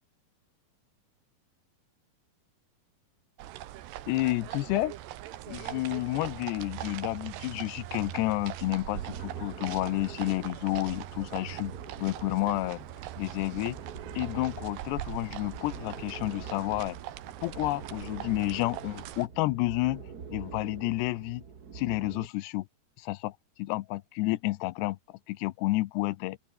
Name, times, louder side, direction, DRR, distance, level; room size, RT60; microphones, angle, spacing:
sound 1, 3.4-19.3, right 14 dB, 90° right, 3.5 m, -41 dB
voice 1, 4.1-4.9 5.5-11.7 12.0-12.8 13.2-13.8 14.2-17.0 17.4-20.0 20.3-21.4 21.7-22.7 23.0-23.3 23.6-25.0 25.3-26.4, left 19 dB, 85° left, 2.9 m, -30 dB
sound 2, 7.7-12.4, left 3 dB, 50° left, 8.7 m, -69 dB
sound 3, 8.9-22.3, right 6 dB, 70° right, 0.9 m, -45 dB
open air
omnidirectional pair, 4.8 m